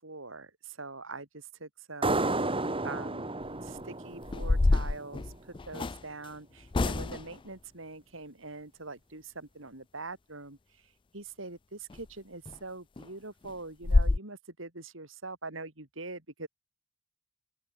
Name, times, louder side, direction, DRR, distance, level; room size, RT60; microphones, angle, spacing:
voice 1, 0.0-2.2 2.8-3.2 3.6-5.3 5.7-10.6 11.1-16.5, right 3 dB, 75° right, 4.7 m, -43 dB
sound 1, 2.0-5.3, right 2 dB, 25° right, 3.8 m, -32 dB
sound 2, 3.4-3.7 4.2-6.0 6.7-7.4 11.9-12.0 12.4-12.6 13.0-13.1 13.4-13.5 13.8-14.2, left 2 dB, 25° left, 0.4 m, -27 dB
open air
head